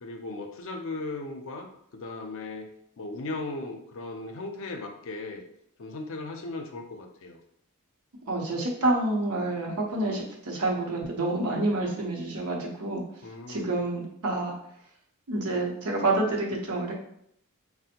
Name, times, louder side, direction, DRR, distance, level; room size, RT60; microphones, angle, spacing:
voice 1, 0.0-1.7 1.9-2.7 3.0-5.4 5.8-7.4 13.2-13.6, left 2 dB, 60° left, 4 dB, 0.5 m, -37 dB
voice 2, 8.2-13.0 13.5-14.6 15.3-17.0, right 2 dB, 80° right, -1 dB, 0.8 m, -28 dB
4.1 x 2.1 x 2.8 m, 0.72 s
head